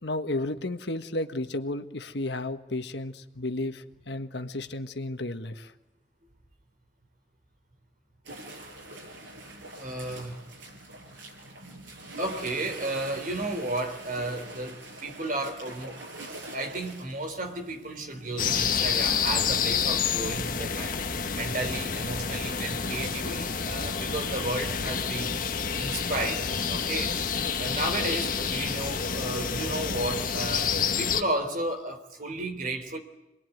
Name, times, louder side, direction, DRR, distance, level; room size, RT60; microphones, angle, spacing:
voice 1, 0.0-5.7, left 2 dB, 65° left, 1.6 m, -33 dB
sound 1, 8.2-18.7, right 2 dB, 85° right, 7.2 m, -44 dB
voice 2, 9.8-10.4 12.2-16.0 16.5-21.0 21.3-25.4 25.8-27.2 27.6-33.0, right 2 dB, 45° right, 3.7 m, -33 dB
sound 2, 18.4-31.2, left 6 dB, 45° left, 1.3 m, -29 dB
28.0 x 21.5 x 9.4 m
head